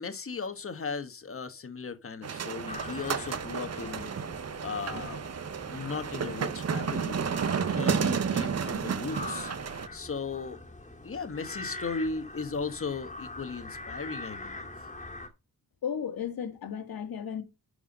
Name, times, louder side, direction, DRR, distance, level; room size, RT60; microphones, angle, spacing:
voice 1, 0.0-4.1 4.6-5.2 5.7-7.3 7.7-9.5 9.9-10.6 11.0-14.7, left 4 dB, 35° left, 1.4 m, -36 dB
sound 1, 2.2-9.9, right 6 dB, 40° right, 0.7 m, -31 dB
sound 2, 2.7-15.3, left 2 dB, 20° left, 2.2 m, -43 dB
voice 2, 15.8-17.4, left 8 dB, 60° left, 2.1 m, -34 dB
11.5 x 4.8 x 5.4 m
wide cardioid pair, 170°, 40 cm